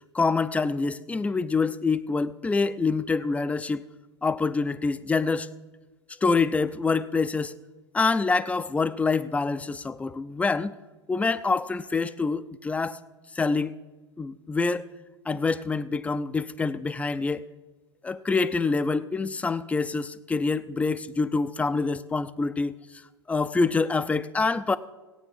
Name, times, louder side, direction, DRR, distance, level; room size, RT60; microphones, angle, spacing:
voice 1, 0.1-3.8 4.2-5.5 6.2-7.5 7.9-10.7 11.1-13.0 13.3-13.7 14.2-14.9 15.3-17.4 18.0-22.7 23.3-24.8, left 4 dB, 10° left, 14 dB, 0.5 m, -26 dB
17.5 x 9.1 x 5.6 m, 1.2 s
figure-of-eight pair, 95°, 15 cm